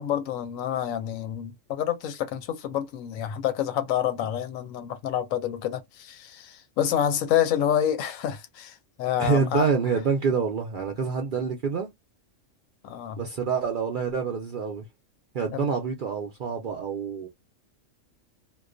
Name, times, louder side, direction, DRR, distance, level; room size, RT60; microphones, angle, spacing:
voice 1, 0.0-9.7 12.8-13.2 15.5-15.7, left 10 dB, 90° left, 1.0 m, -28 dB
voice 2, 9.2-11.9 13.2-14.9 15.3-17.3, right 5 dB, 65° right, 0.5 m, -27 dB
2.3 x 2.2 x 2.4 m
omnidirectional pair, 1.3 m